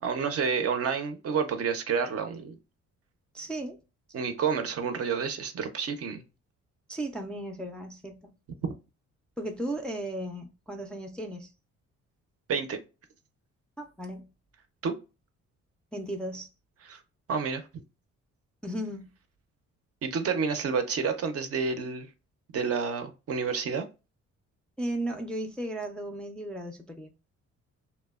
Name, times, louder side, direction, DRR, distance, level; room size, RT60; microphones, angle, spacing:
voice 1, 0.0-2.6 4.1-6.2 8.6-8.7 12.5-12.8 14.8-14.9 16.9-17.0 17.3-17.6 20.0-22.1 22.5-23.8, right 6 dB, 50° right, 0.5 m, -29 dB
voice 2, 3.3-3.8 6.9-8.3 9.4-11.5 13.8-14.3 15.9-16.5 18.6-19.1 24.8-27.1, right 1 dB, 5° left, 0.3 m, -35 dB
2.9 x 2.1 x 2.2 m
cardioid pair, 90°, 30 cm